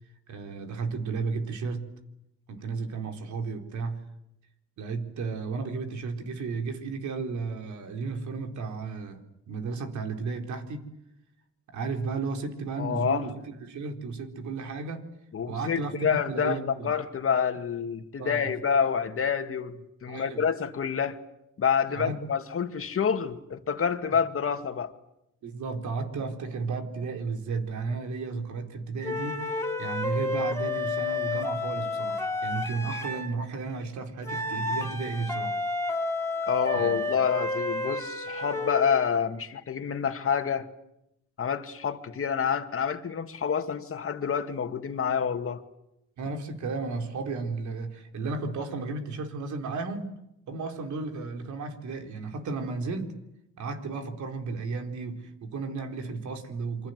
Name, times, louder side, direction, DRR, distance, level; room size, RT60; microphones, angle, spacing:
voice 1, 0.3-1.9 2.5-4.1 4.8-10.8 11.7-15.1 15.5-16.9 18.2-18.5 20.1-20.4 21.9-22.2 24.1-24.2 25.4-35.6 36.7-37.0 46.2-50.2 50.5-53.2 53.6-56.9, right 4 dB, 70° right, 4 dB, 4.1 m, -34 dB
voice 2, 12.8-13.3 15.3-16.6 16.8-21.2 21.6-24.9 36.4-40.7 41.4-45.6, left 7 dB, 45° left, 7 dB, 2.2 m, -28 dB
sound 1, 29.0-33.3 34.2-38.9, left 2 dB, 10° left, 3.9 m, -31 dB
27.5 x 24.5 x 8.0 m, 0.84 s
cardioid pair, 90°, 30 cm